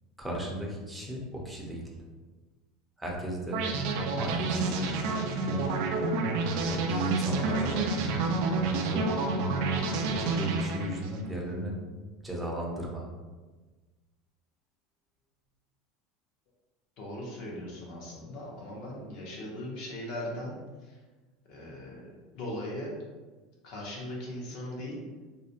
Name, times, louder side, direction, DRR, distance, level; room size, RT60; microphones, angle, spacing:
voice 1, 0.2-2.0 3.0-3.6 4.2-4.9 6.6-9.1 10.1-11.8 12.2-13.1, right 1 dB, 5° right, -3 dB, 0.6 m, -35 dB
sound 1, 3.5-11.2, right 3 dB, 70° right, 0.3 m, -29 dB
voice 2, 17.0-21.0 21.5-23.0 23.6-25.0, left 1 dB, 65° left, -3 dB, 0.8 m, -39 dB
2.4 x 2.0 x 2.8 m, 1.3 s
supercardioid pair, 115°, 0 cm